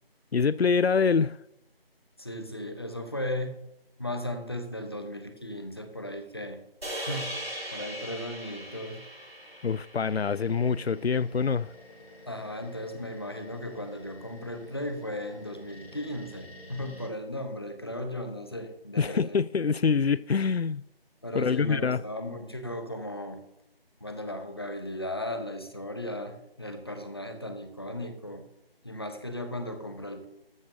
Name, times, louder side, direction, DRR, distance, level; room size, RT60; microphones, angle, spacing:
voice 1, 0.3-1.4 9.6-11.7 19.0-20.8 21.3-22.0, left 5 dB, 90° left, 0.5 m, -25 dB
voice 2, 2.2-3.6 4.0-6.6 6.9-9.0 12.3-19.4 21.2-23.4 24.0-28.5 28.8-30.2, left 1 dB, 25° left, 1.0 m, -36 dB
sound 1, 6.8-11.2, equal, 90° right, 5.5 m, -39 dB
sound 2, 10.0-17.1, left 1 dB, 65° left, 4.3 m, -50 dB
14.0 x 13.0 x 2.8 m
figure-of-eight pair, 165°, 30 cm